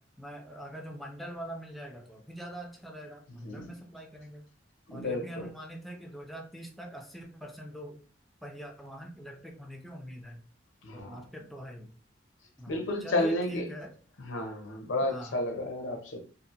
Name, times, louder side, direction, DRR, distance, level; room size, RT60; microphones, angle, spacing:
voice 1, 0.0-4.5 4.9-8.0 8.4-10.4 10.9-11.9 12.6-14.0 15.0-15.4, right 1 dB, ahead, 1 dB, 0.4 m, -43 dB
voice 2, 3.4-3.7 4.9-5.5 10.8-11.2 12.7-13.6 14.2-16.2, left 1 dB, 85° left, 5 dB, 0.7 m, -32 dB
2.7 x 2.5 x 2.5 m, 0.39 s
head